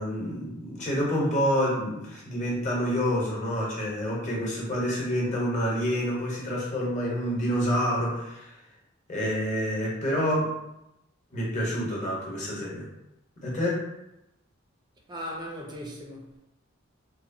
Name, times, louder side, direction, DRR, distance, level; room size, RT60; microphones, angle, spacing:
voice 1, 0.0-8.5 9.1-10.5 11.3-12.9 13.4-13.8, equal, 35° left, 0.8 m, -28 dB
voice 2, 15.1-16.4, equal, 20° right, 0.4 m, -38 dB
2.8 x 2.2 x 2.5 m
head